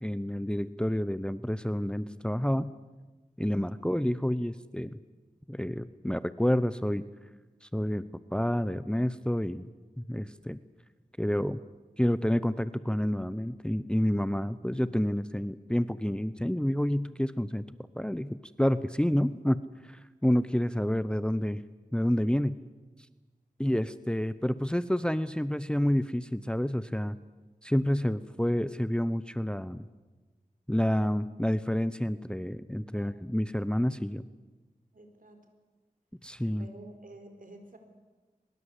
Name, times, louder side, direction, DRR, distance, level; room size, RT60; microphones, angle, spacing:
voice 1, 0.0-2.7 3.4-5.0 5.5-7.0 7.6-8.0 8.3-9.7 10.0-10.6 11.2-11.6 12.0-17.6 18.0-21.6 21.9-22.6 23.6-27.1 27.6-29.8 30.7-34.2 36.2-36.7, equal, 5° left, 14 dB, 0.8 m, -29 dB
voice 2, 34.9-35.5 36.5-37.8, right 2 dB, 65° right, 5 dB, 4.3 m, -50 dB
23.0 x 21.5 x 8.3 m, 1.2 s
wide cardioid pair, 50°, 15 cm